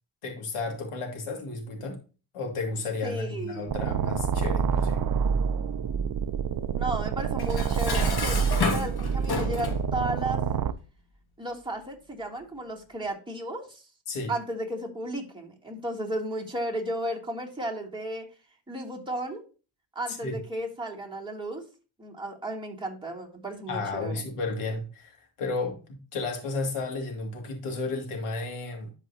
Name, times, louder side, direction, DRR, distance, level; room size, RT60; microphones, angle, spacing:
voice 1, 0.2-2.0 2.3-5.0 14.1-14.3 20.1-20.4 23.7-28.9, left 3 dB, 80° left, 2.5 m, -33 dB
voice 2, 3.0-3.7 6.7-10.4 11.4-13.8 14.3-18.2 18.7-19.4 19.9-21.6 22.0-24.2, right 1 dB, 10° right, 2.9 m, -34 dB
sound 1, 3.7-10.7, right 7 dB, 45° right, 0.6 m, -27 dB
Dishes pots and pans, 7.4-9.9, left 4 dB, 50° left, 2.0 m, -30 dB
11.5 x 4.9 x 2.8 m
cardioid pair, 75°, 49 cm